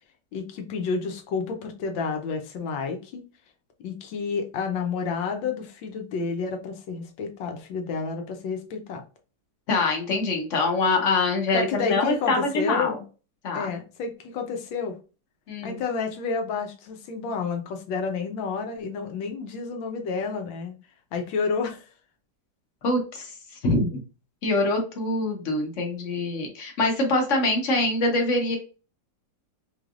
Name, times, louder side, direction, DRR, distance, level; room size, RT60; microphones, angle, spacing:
voice 1, 0.3-3.2 3.8-9.0 11.5-13.0 13.5-15.0 15.6-20.7 21.1-21.8, left 5 dB, 80° left, 4 dB, 1.5 m, -30 dB
voice 2, 9.7-13.0 13.4-13.7 15.5-15.8 22.8-23.3 23.6-24.0 24.4-28.6, left 2 dB, 50° left, 2 dB, 1.1 m, -24 dB
4.6 x 3.3 x 2.4 m, 0.34 s
omnidirectional pair, 2.0 m